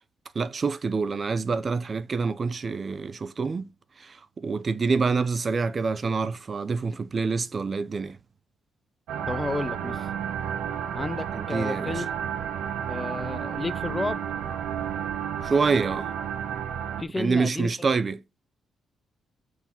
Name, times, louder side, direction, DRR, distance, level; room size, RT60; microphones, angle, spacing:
voice 1, 0.3-3.7 4.0-8.2 11.3-12.0 15.4-16.1 17.2-18.2, right 4 dB, 35° right, 0.6 m, -26 dB
sound 1, 9.1-17.0, right 9 dB, 85° right, 1.2 m, -31 dB
voice 2, 9.3-10.1 10.9-12.1 12.9-14.2 17.0-17.7, left 2 dB, 15° left, 0.4 m, -31 dB
8.1 x 4.7 x 5.5 m
cardioid pair, 125°, 0 cm